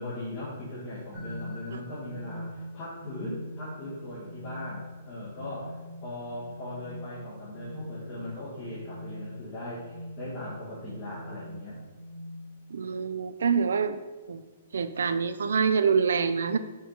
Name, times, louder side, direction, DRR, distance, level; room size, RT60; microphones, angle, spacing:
voice 1, 0.0-11.7, left 1 dB, 20° left, -9 dB, 1.2 m, -39 dB
sound 1, 1.1-12.9, equal, 10° right, 1.6 m, -42 dB
voice 2, 12.7-14.0 14.3-14.4 14.7-16.6, right 6 dB, 90° right, 11 dB, 0.4 m, -26 dB
4.7 x 4.5 x 5.0 m, 1.2 s
hypercardioid pair, 180°, 0 cm